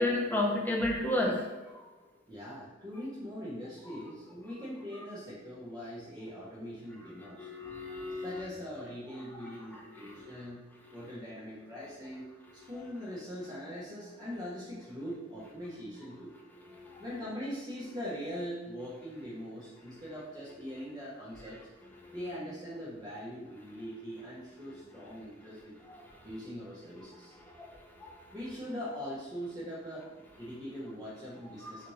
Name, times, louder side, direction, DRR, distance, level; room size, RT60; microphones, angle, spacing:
voice 1, 0.0-1.3 7.4-8.4 28.0-28.1 31.6-31.7, left 1 dB, 10° left, -2 dB, 0.8 m, -30 dB
voice 2, 2.3-7.5 8.2-10.7 10.9-16.3 17.0-21.7 22.1-25.8 26.2-27.3 28.3-30.1 30.4-31.9, equal, 20° right, -8 dB, 1.0 m, -42 dB
5.8 x 2.5 x 3.1 m, 1.2 s
head